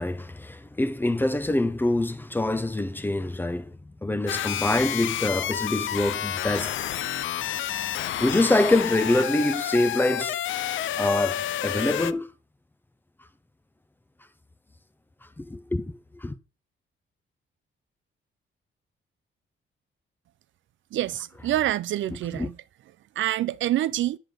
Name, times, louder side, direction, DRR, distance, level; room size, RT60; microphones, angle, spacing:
voice 1, 0.0-3.7 4.0-6.8 8.2-10.4 11.0-12.3 15.4-15.9 16.2-16.3 22.3-22.5, left 2 dB, 10° left, 0.6 m, -25 dB
sound 1, 4.3-12.1, left 11 dB, 70° left, 0.5 m, -30 dB
voice 2, 20.9-22.5 23.2-24.2, right 13 dB, 65° right, 0.4 m, -26 dB
9.2 x 7.0 x 3.8 m
cardioid pair, 145°, 21 cm